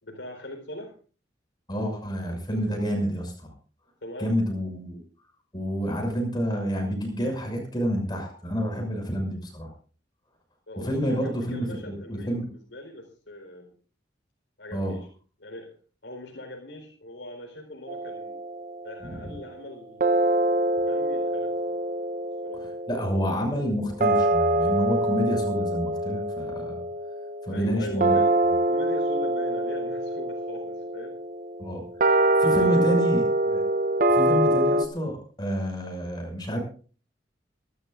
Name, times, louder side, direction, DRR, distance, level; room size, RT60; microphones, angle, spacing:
voice 1, 0.0-0.9 4.0-4.3 10.7-13.7 14.6-15.1 15.4-15.7 16.0-18.4 18.8-20.2 20.9-21.8 22.4-22.7 27.5-28.4 28.7-31.2 32.8-33.0, left 1 dB, 80° left, 1 dB, 4.3 m, -40 dB
voice 2, 1.7-3.5 4.2-5.0 5.5-9.7 10.8-12.4 14.7-14.9 19.0-19.3 22.9-26.9 27.4-28.2 31.6-31.8 32.4-33.6 34.1-36.6, equal, 25° left, 2 dB, 6.2 m, -28 dB
sound 1, 17.9-19.2 20.0-34.9, right 1 dB, 45° right, 0.9 m, -25 dB
23.5 x 13.0 x 2.6 m, 0.39 s
head